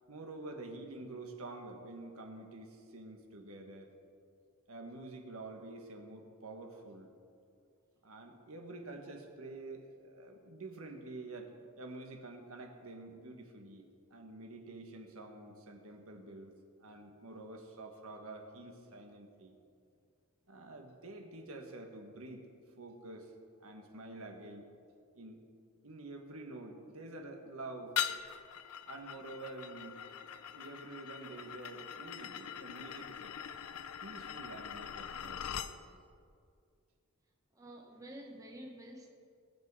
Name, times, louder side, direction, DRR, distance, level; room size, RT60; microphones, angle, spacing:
voice 1, 0.1-3.9 4.7-7.1 8.0-16.5 16.8-19.5 20.5-22.5 22.8-23.3 23.6-24.7 25.1-25.4 25.8-28.0 28.9-30.0 30.5-33.4 34.0-35.8, right 2 dB, 70° right, 3 dB, 1.5 m, -48 dB
sound 1, 28.0-35.7, left 9 dB, 80° left, 0.6 m, -42 dB
voice 2, 37.5-39.1, right 1 dB, 15° right, 0 dB, 1.1 m, -49 dB
20.0 x 7.4 x 4.9 m, 2.3 s
head